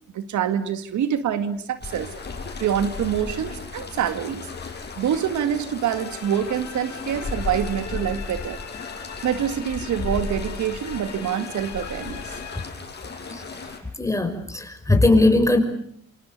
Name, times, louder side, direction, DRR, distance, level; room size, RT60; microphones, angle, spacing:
voice 1, 0.1-2.1 2.6-4.5 5.0-8.6 9.2-12.2, right 9 dB, 75° right, 11 dB, 2.2 m, -26 dB
sound 1, 1.8-13.8, left 4 dB, 35° left, 6.3 m, -35 dB
sound 2, 5.9-12.6, left 9 dB, 65° left, 5.0 m, -41 dB
voice 2, 14.0-15.6, left 2 dB, 10° left, 7 dB, 6.1 m, -19 dB
27.5 x 27.0 x 6.8 m, 0.66 s
cardioid pair, 90°, 30 cm